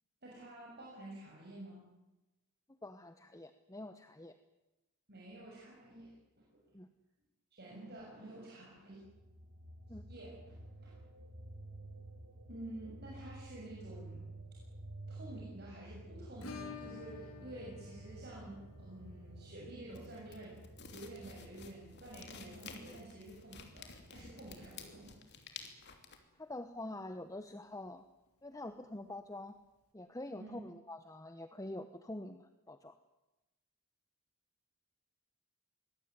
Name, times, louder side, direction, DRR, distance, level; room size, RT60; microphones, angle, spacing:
voice 1, 0.2-1.9 5.1-6.6 7.5-9.0 10.1-10.6 10.8-11.0 12.5-14.3 15.1-20.6 20.9-25.2 30.4-30.6, right 1 dB, 45° right, -4 dB, 6.8 m, -50 dB
voice 2, 2.7-4.4 6.7-6.9 9.9-10.0 26.3-28.0 28.4-29.6 29.9-32.9, left 1 dB, 15° left, 10 dB, 0.9 m, -46 dB
sound 1, 9.0-25.1, right 1 dB, 65° right, 5.6 m, -52 dB
Acoustic guitar / Strum, 16.4-25.0 25.3-25.4 25.7-25.8 26.1-26.2 28.3-28.4 29.5-29.6, left 4 dB, 85° left, 3.8 m, -53 dB
sound 2, 19.9-26.2, left 5 dB, 50° left, 3.1 m, -52 dB
24.5 x 19.5 x 9.6 m, 1.0 s
head